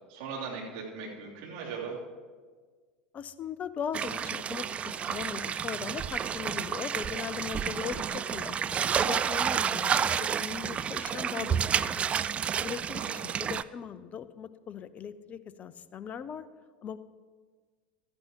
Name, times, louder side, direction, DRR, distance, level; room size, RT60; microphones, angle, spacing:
voice 1, 0.1-2.0 7.8-8.0 12.9-13.4, right 5 dB, 50° right, -4 dB, 3.2 m, -39 dB
voice 2, 3.1-8.6 9.0-12.1 12.6-16.4 16.8-17.0, left 8 dB, 30° left, 14 dB, 0.6 m, -39 dB
sound 1, 3.9-13.6, right 8 dB, 25° right, 0.3 m, -30 dB
16.0 x 13.5 x 3.0 m, 1.5 s
figure-of-eight pair, 80°, 5 cm